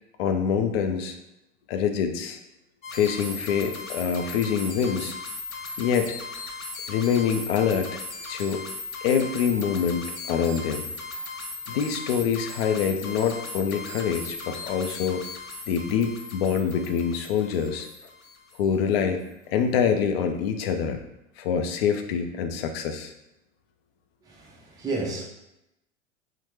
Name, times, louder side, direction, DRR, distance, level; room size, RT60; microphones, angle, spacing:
voice 1, 0.2-1.2 1.7-2.4 2.9-5.2 5.8-6.2 6.9-8.0 8.3-8.6 9.0-10.8 11.7-15.2 15.7-17.9 18.6-21.0 21.4-23.1, left 7 dB, 50° left, 6 dB, 0.5 m, -25 dB
sound 1, 2.8-18.7, left 3 dB, 90° left, 0.6 m, -38 dB
voice 2, 24.8-25.2, right 3 dB, 10° right, -2 dB, 0.5 m, -30 dB
4.1 x 2.1 x 3.1 m, 0.89 s
figure-of-eight pair, 95°, 41 cm